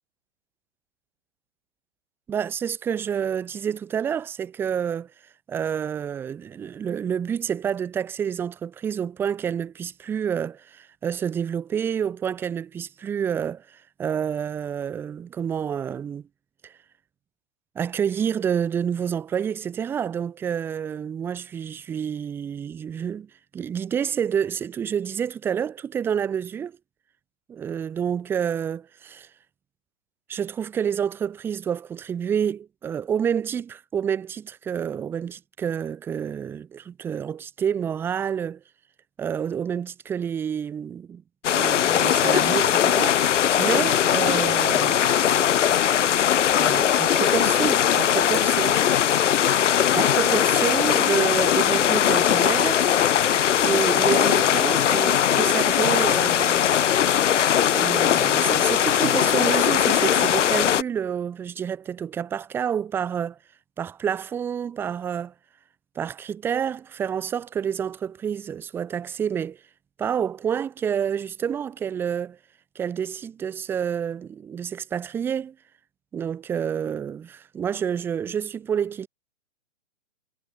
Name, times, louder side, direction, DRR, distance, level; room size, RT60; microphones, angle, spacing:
voice 1, 2.3-5.1 5.5-16.2 16.6-16.7 17.7-26.8 27.5-29.3 30.3-38.6 39.2-41.2 41.5-43.3 43.6-45.0 46.6-48.8 49.9-52.9 53.6-56.7 57.7-63.4 63.8-65.3 66.0-69.6 70.0-72.4 72.7-75.5 76.1-79.1, right 8 dB, 5° right, 0.8 m, -28 dB
sound 1, 41.4-60.8, left 10 dB, 80° left, 0.8 m, -20 dB
hypercardioid pair, 155°, 36 cm